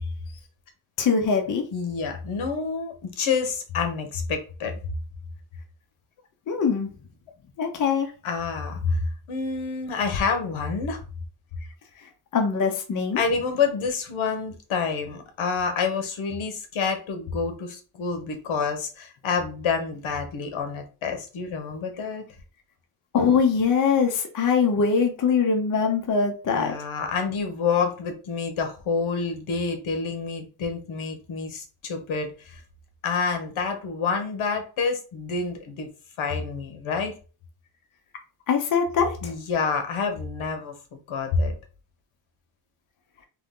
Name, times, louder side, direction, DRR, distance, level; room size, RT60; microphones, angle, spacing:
voice 1, 1.0-1.6 6.5-6.9 7.6-8.1 12.0-13.2 23.1-26.8 38.5-39.3, left 5 dB, 40° left, 3 dB, 0.8 m, -22 dB
voice 2, 1.7-4.7 8.2-11.0 13.2-22.2 26.5-32.6 33.0-35.9 36.2-37.1 39.2-40.7 41.1-41.5, left 5 dB, 80° left, 6 dB, 1.3 m, -28 dB
3.8 x 3.4 x 3.7 m, 0.35 s
wide cardioid pair, 165°, 48 cm